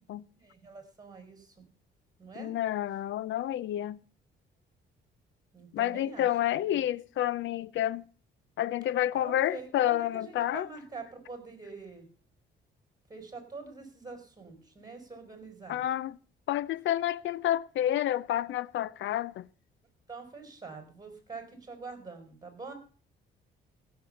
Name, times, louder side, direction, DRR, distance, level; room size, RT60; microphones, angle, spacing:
voice 1, 0.4-1.6 2.2-2.5 5.5-6.8 9.2-12.1 13.1-15.8 20.1-22.7, right 4 dB, 20° right, 5.2 m, -45 dB
voice 2, 2.4-4.0 5.7-8.0 8.6-10.7 15.7-16.2 16.5-19.4, left 12 dB, 70° left, 0.6 m, -29 dB
15.5 x 6.9 x 7.0 m
cardioid pair, 90°, 20 cm